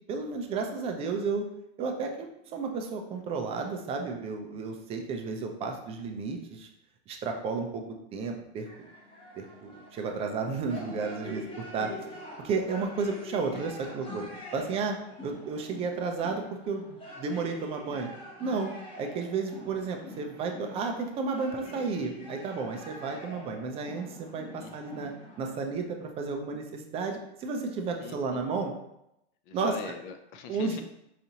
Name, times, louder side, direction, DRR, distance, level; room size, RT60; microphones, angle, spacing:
voice 1, 0.1-1.5 1.8-6.7 7.1-7.8 8.1-8.9 9.4-11.5 11.7-14.3 14.5-15.0 15.2-18.1 18.4-18.7 19.0-25.1 25.4-28.7 29.5-29.7 30.5-30.8, right 4 dB, 20° right, 4 dB, 0.3 m, -32 dB
sound 1, 8.7-25.6, left 1 dB, 15° left, 1.0 m, -45 dB
voice 2, 28.0-28.4 29.5-30.8, left 5 dB, 50° left, 7 dB, 0.6 m, -43 dB
4.8 x 2.6 x 2.8 m, 0.82 s
hypercardioid pair, 120°, 34 cm